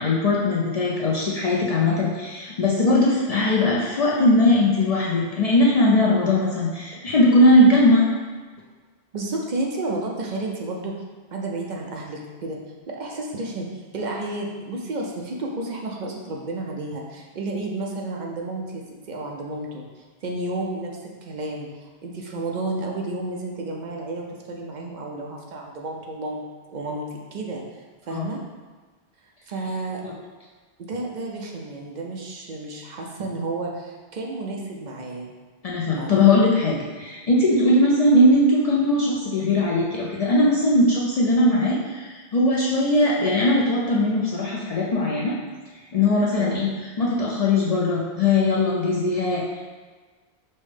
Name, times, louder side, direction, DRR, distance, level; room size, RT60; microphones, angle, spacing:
voice 1, 0.0-8.0 28.1-28.3 35.6-45.3 45.9-46.7 47.0-49.4, left 1 dB, 55° left, -4 dB, 0.4 m, -19 dB
voice 2, 9.1-11.0 11.3-12.6 12.9-20.9 21.2-26.4 26.7-28.4 29.5-30.0 30.8-35.3 36.0-36.3 46.4-46.6, right 2 dB, 55° right, -1 dB, 0.6 m, -31 dB
5.4 x 2.1 x 3.2 m, 1.4 s
omnidirectional pair, 1.1 m